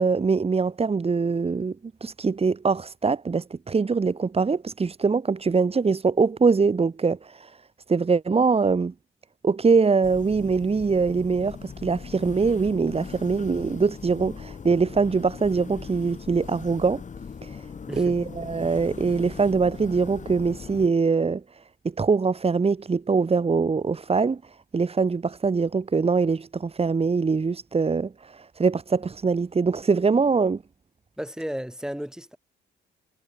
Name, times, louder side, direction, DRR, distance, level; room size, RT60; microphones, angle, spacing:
voice 1, 0.0-1.8 2.0-7.6 7.9-8.9 9.4-17.0 17.4-17.7 17.9-30.6, right 4 dB, 30° right, 2.3 m, -23 dB
sound 1, 10.0-20.9, left 6 dB, 40° left, 2.4 m, -40 dB
voice 2, 17.9-18.2 31.2-32.4, equal, 5° right, 2.9 m, -33 dB
cardioid pair, 90°, 20 cm